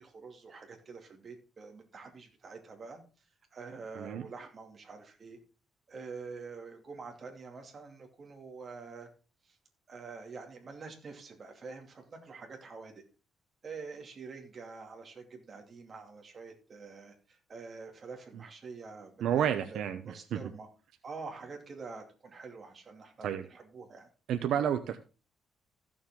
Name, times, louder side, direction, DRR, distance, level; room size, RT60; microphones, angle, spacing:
voice 1, 0.0-3.3 3.5-5.4 5.9-9.1 9.4-9.6 9.9-13.0 13.6-20.7 21.0-24.1, right 4 dB, 30° right, 3 dB, 2.5 m, -46 dB
voice 2, 19.2-20.4 23.2-23.4 24.3-25.0, right 9 dB, 75° right, 9 dB, 0.8 m, -30 dB
15.0 x 7.2 x 3.7 m, 0.33 s
cardioid pair, 160°, 0 cm